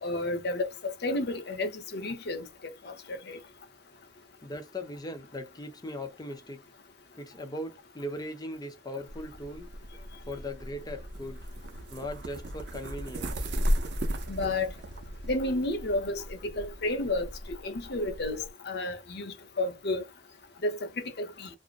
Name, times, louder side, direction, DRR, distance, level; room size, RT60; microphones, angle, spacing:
voice 1, 0.0-3.4 14.3-14.7 15.3-20.0 20.6-21.5, left 2 dB, 60° left, 0.7 m, -32 dB
voice 2, 4.4-6.7 7.2-9.7 10.3-11.5 11.9-13.5, left 1 dB, 20° left, 0.6 m, -39 dB
sound 1, 9.1-18.5, equal, 65° right, 0.6 m, -36 dB
2.5 x 2.1 x 2.4 m
head